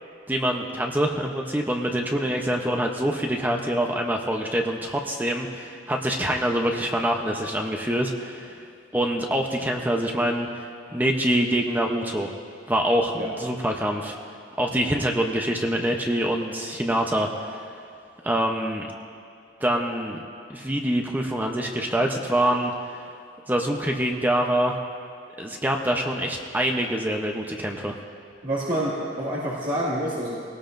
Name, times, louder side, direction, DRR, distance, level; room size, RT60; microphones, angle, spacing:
voice 1, 0.3-8.6 8.9-12.3 12.7-14.2 14.6-17.6 18.2-18.9 19.6-20.2 20.5-22.7 23.5-24.8 25.4-27.9, right 1 dB, 10° right, 2 dB, 0.8 m, -25 dB
voice 2, 28.4-30.4, right 1 dB, 45° right, -9 dB, 2.2 m, -28 dB
21.5 x 18.5 x 2.6 m, 2.4 s
head